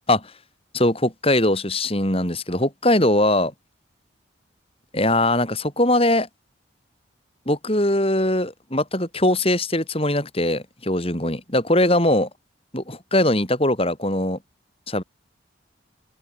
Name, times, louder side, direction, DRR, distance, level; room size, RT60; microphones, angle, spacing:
voice 1, 0.7-3.5 4.9-6.3 7.5-12.3 12.7-14.4 14.9-15.0, left 1 dB, 30° left, 7.9 m, -21 dB
head